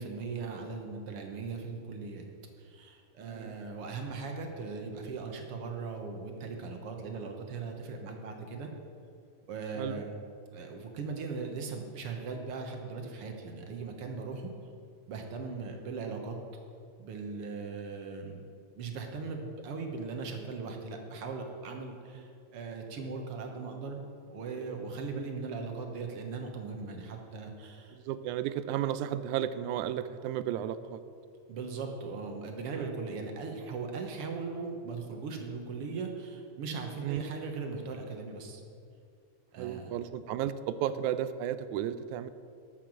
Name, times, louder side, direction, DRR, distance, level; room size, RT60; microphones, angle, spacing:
voice 1, 0.0-2.3 2.6-8.7 9.5-10.2 10.5-14.5 15.1-16.4 17.0-18.4 18.7-24.0 24.3-28.0 31.5-38.6 39.5-39.9, right 4 dB, 60° right, 3 dB, 1.8 m, -39 dB
voice 2, 3.2-3.6 9.8-10.0 22.2-22.3 27.9-31.0 32.7-32.9 37.0-37.2 39.6-42.3, right 11 dB, 85° right, 13 dB, 1.9 m, -33 dB
12.5 x 6.8 x 7.4 m, 2.4 s
omnidirectional pair, 3.4 m